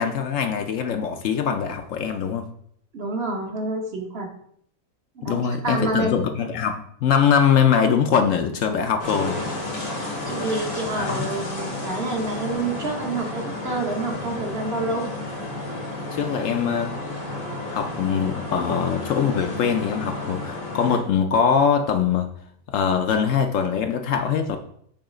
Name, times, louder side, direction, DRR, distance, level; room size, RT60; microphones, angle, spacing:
voice 1, 0.0-2.5 5.2-9.4 11.0-11.3 16.1-17.0 17.7-22.3 22.7-24.6, left 7 dB, 70° left, 6 dB, 0.9 m, -22 dB
voice 2, 2.9-4.3 5.2-6.2 10.2-15.1, right 2 dB, 50° right, 1 dB, 1.0 m, -28 dB
sound 1, 9.0-21.0, left 2 dB, 90° left, 2.1 m, -31 dB
7.2 x 2.8 x 5.0 m, 0.66 s
omnidirectional pair, 1.5 m